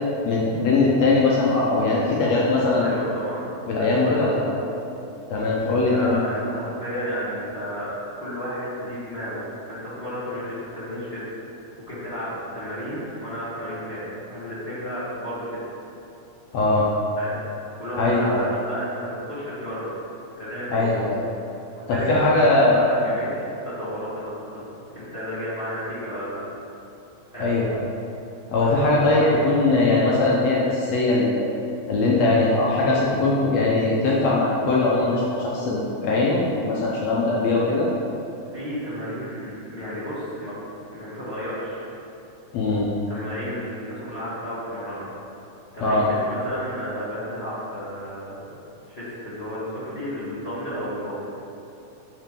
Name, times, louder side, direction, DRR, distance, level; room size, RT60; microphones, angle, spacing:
voice 1, 0.2-2.9 3.7-4.4 5.3-6.2 16.5-16.9 18.0-18.5 20.7-21.2 21.9-22.8 27.4-27.9 28.5-31.5 31.9-37.9 42.5-42.9 45.8-46.1, left 2 dB, 70° left, -5 dB, 1.8 m, -20 dB
voice 2, 2.6-3.5 3.8-4.6 5.7-11.2 11.9-15.5 17.2-17.4 17.8-19.9 20.4-20.9 21.7-24.7 24.9-26.4 27.3-27.5 28.6-29.4 38.5-40.5 40.9-41.9 43.1-45.1 45.7-48.6 48.9-51.3, equal, 40° left, -11 dB, 0.8 m, -32 dB
8.5 x 4.9 x 3.7 m, 3.0 s
omnidirectional pair, 3.5 m